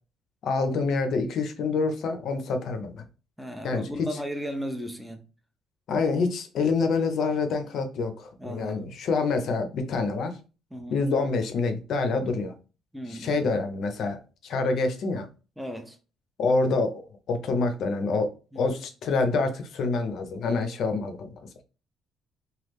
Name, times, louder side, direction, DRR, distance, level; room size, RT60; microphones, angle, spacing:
voice 1, 0.4-3.0 3.6-3.9 5.9-10.4 10.9-12.5 13.1-15.3 16.4-18.3 18.6-21.3, left 3 dB, 50° left, 0.6 m, -27 dB
voice 2, 3.4-5.2 8.4-8.9 10.7-11.0 12.9-13.3 15.6-16.0 18.5-18.8 20.5-20.6, equal, ahead, 0.4 m, -35 dB
3.1 x 2.3 x 3.4 m
cardioid pair, 180°, 0 cm